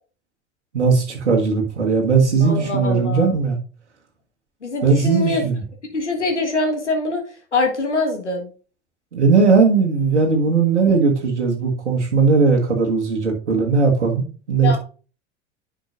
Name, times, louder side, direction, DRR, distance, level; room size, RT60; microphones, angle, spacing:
voice 1, 0.7-3.6 4.8-5.6 9.1-14.8, right 4 dB, 85° right, 0 dB, 1.6 m, -18 dB
voice 2, 2.4-3.3 4.6-5.4 5.9-7.2 7.5-8.5 14.6-14.8, left 2 dB, 90° left, 3 dB, 1.6 m, -23 dB
10.5 x 6.4 x 2.6 m, 0.36 s
figure-of-eight pair, 75°, 34 cm